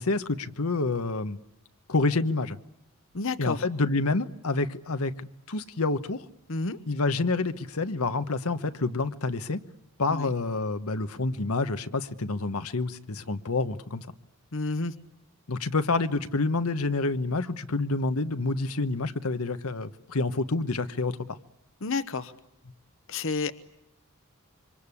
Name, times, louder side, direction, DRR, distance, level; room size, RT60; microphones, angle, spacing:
voice 1, 0.0-1.4 1.9-2.6 3.4-6.2 6.9-9.6 10.0-14.1 15.5-21.1, left 3 dB, 80° left, 10 dB, 1.1 m, -28 dB
voice 2, 3.1-3.7 6.5-6.8 10.1-10.3 14.5-14.9 21.8-22.3 23.1-23.5, left 3 dB, 60° left, 12 dB, 1.0 m, -30 dB
27.0 x 24.5 x 8.5 m, 0.85 s
head